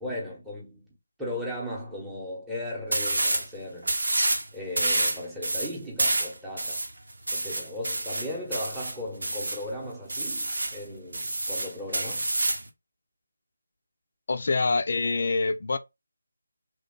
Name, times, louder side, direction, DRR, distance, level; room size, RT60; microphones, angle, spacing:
voice 1, 0.0-0.9 1.2-4.0 4.5-6.8 7.3-12.3, left 1 dB, 5° right, 0.9 m, -36 dB
sound 1, 2.9-3.5 3.8-4.4 4.8-9.6 10.1-10.8 11.1-12.7, right 2 dB, 70° right, 0.9 m, -28 dB
voice 2, 14.3-15.8, left 3 dB, 55° left, 0.5 m, -25 dB
3.2 x 2.3 x 3.7 m
figure-of-eight pair, 160°, 0 cm